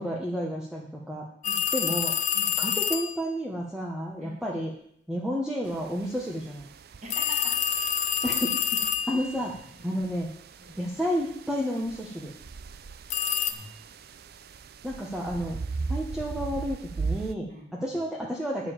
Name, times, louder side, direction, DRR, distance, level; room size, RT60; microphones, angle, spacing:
voice 1, 0.0-1.3 1.7-2.1 2.6-4.7 5.1-6.6 8.2-9.5 9.8-10.3 10.8-12.3 14.8-15.6 15.9-17.5 17.8-18.7, equal, 5° right, -3 dB, 1.1 m, -31 dB
sound 1, 1.4-3.2 7.1-9.4 13.1-13.5, left 8 dB, 40° left, 0.6 m, -27 dB
sound 2, 5.7-17.3, right 4 dB, 55° right, 0.5 m, -39 dB
voice 2, 7.0-7.7 9.3-10.1 10.6-10.8 13.5-13.8 15.3-15.9 17.5-18.0, right 1 dB, 40° right, -2 dB, 2.3 m, -45 dB
9.3 x 5.2 x 7.1 m, 0.68 s
head